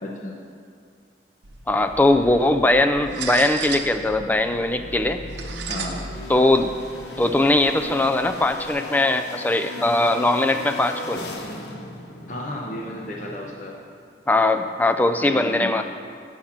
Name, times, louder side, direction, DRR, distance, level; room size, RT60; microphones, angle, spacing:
voice 1, 0.0-0.4 5.7-6.1 12.3-13.7 15.2-15.7, left 1 dB, 45° left, -1 dB, 0.9 m, -33 dB
sound 1, 1.4-8.7, right 4 dB, 80° right, 0.7 m, -36 dB
voice 2, 1.7-5.2 6.3-6.7 7.2-11.2 14.3-15.8, left 2 dB, 10° left, 7 dB, 0.3 m, -20 dB
sound 2, 2.1-13.9, left 2 dB, 75° left, 1.0 m, -38 dB
7.1 x 6.5 x 7.3 m, 2.2 s
head